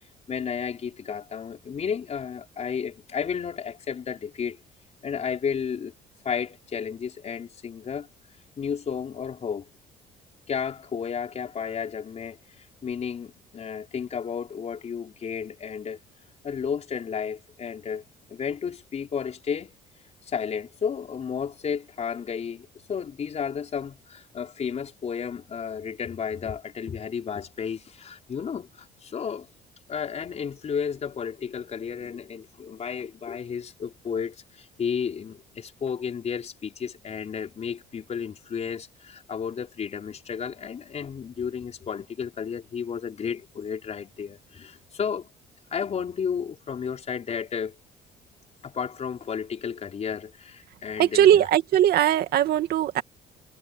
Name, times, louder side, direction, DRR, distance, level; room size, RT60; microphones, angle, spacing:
voice 1, 0.3-4.6 5.0-5.9 6.2-8.1 8.6-9.7 10.5-16.0 16.4-18.0 18.3-19.7 20.3-29.5 29.9-45.3 45.7-47.8 48.6-51.5, left 7 dB, 40° left, 5.0 m, -32 dB
voice 2, 51.0-53.0, right 11 dB, 65° right, 2.3 m, -20 dB
cardioid pair, 110°, 17 cm